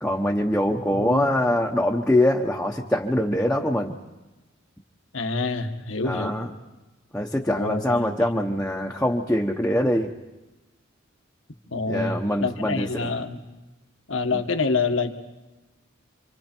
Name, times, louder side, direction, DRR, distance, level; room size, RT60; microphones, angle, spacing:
voice 1, 0.0-3.9 6.0-6.5 7.1-10.1 11.9-13.1, left 1 dB, 5° left, -2 dB, 1.0 m, -23 dB
voice 2, 0.9-1.3 5.1-6.3 7.6-8.1 11.7-13.4 14.1-15.2, left 3 dB, 80° left, 6 dB, 1.5 m, -27 dB
28.0 x 25.5 x 4.5 m, 1.1 s
head